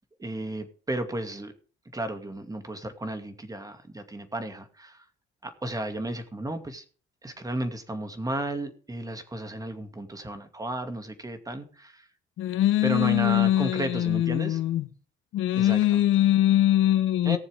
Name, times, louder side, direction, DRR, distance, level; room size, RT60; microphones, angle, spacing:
voice 1, 0.2-1.5 1.9-5.0 5.4-6.8 7.2-12.1 12.8-14.6 15.6-16.0 17.2-17.4, right 1 dB, 20° right, 2.5 m, -33 dB
voice 2, 12.4-14.9 15.3-17.4, left 13 dB, 85° left, 1.3 m, -22 dB
18.5 x 7.2 x 3.7 m
cardioid pair, 90°, 20 cm